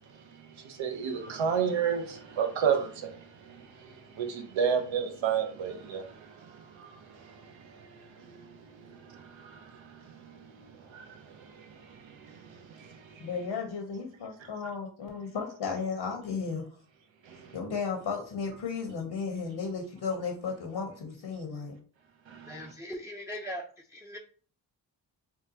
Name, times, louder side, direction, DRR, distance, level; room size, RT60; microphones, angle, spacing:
voice 1, 0.1-13.3 17.3-17.6 22.3-22.7, right 7 dB, 90° right, 0.7 m, -34 dB
voice 2, 13.2-16.6 17.5-21.7, left 5 dB, 80° left, 0.8 m, -34 dB
voice 3, 22.5-23.6 23.9-24.2, equal, 5° right, 0.5 m, -39 dB
3.7 x 2.3 x 2.7 m
cardioid pair, 40°, 45 cm